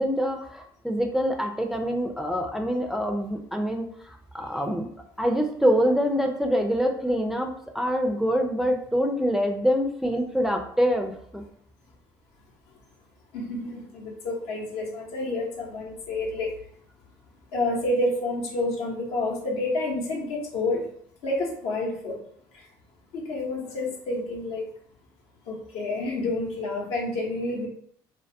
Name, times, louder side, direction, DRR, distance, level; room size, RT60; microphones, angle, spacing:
voice 1, 0.0-4.9 5.2-11.4, equal, 5° right, 3 dB, 0.4 m, -25 dB
voice 2, 13.3-16.5 17.5-20.8 21.2-22.2 23.1-24.7 25.5-27.7, left 2 dB, 70° left, -1 dB, 0.7 m, -29 dB
2.2 x 2.2 x 2.6 m, 0.65 s
hypercardioid pair, 60°, 11 cm